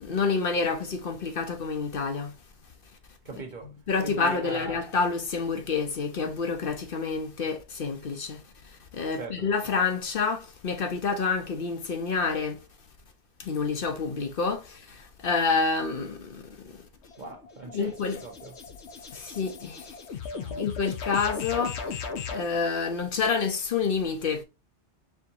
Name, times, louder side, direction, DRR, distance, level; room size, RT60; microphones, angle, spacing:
voice 1, 0.0-2.3 3.9-8.4 9.0-12.5 13.5-14.6 15.2-16.4 17.7-18.2 19.1-19.8 20.6-21.8 22.3-24.4, left 5 dB, 55° left, 0.8 m, -28 dB
voice 2, 3.2-3.7 4.0-4.8 9.1-9.5 17.2-18.5 20.3-20.7, right 4 dB, 45° right, 1.0 m, -40 dB
sound 1, 17.0-22.5, left 5 dB, 75° left, 1.1 m, -37 dB
4.6 x 3.5 x 2.7 m
omnidirectional pair, 1.2 m